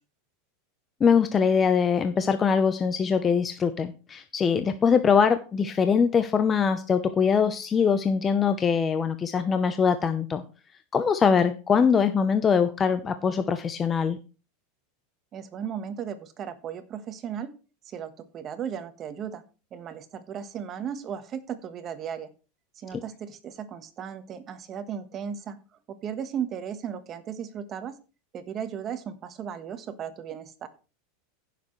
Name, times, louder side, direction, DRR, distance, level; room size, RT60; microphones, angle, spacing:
voice 1, 1.0-10.4 10.9-14.2 22.9-23.0, left 6 dB, 20° left, 9 dB, 0.7 m, -23 dB
voice 2, 15.3-17.5 17.9-19.4 19.7-22.3 22.8-25.6 25.9-28.0 28.3-30.7, right 8 dB, 30° right, 11 dB, 1.3 m, -36 dB
15.5 x 6.8 x 3.2 m, 0.33 s
supercardioid pair, 135°, 0 cm